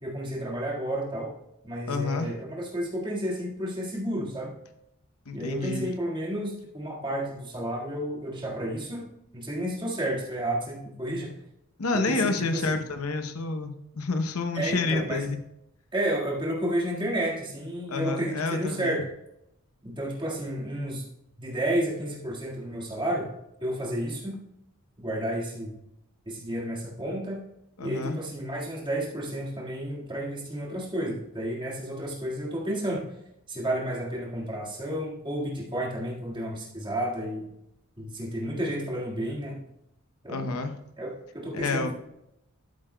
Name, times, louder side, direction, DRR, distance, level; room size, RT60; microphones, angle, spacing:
voice 1, 0.0-1.3 1.6-4.5 5.3-11.4 11.9-12.8 14.5-15.2 15.9-19.0 19.8-21.1 21.4-23.3 23.6-24.4 25.0-25.7 26.3-27.4 27.8-33.0 33.5-37.5 38.0-39.6 40.2-40.5 41.0-41.9, right 1 dB, 20° right, -3 dB, 1.8 m, -31 dB
voice 2, 1.9-2.4 5.3-5.9 11.8-15.4 17.9-19.0 27.8-28.2 40.3-40.7 41.5-41.9, left 3 dB, 85° left, 7 dB, 0.8 m, -29 dB
12.5 x 7.5 x 2.2 m, 0.83 s
head